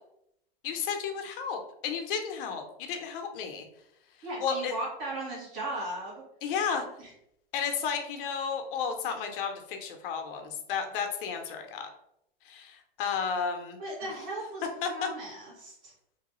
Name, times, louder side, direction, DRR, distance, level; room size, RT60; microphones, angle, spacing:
voice 1, 0.6-3.7 4.4-4.7 6.4-6.9 7.5-11.9 12.4-14.1 14.8-15.1, left 6 dB, 65° left, 5 dB, 0.7 m, -33 dB
voice 2, 4.2-6.2 7.0-7.1 13.8-15.9, right 1 dB, 55° right, -5 dB, 1.3 m, -37 dB
3.0 x 2.2 x 3.0 m, 0.77 s
supercardioid pair, 130°, 29 cm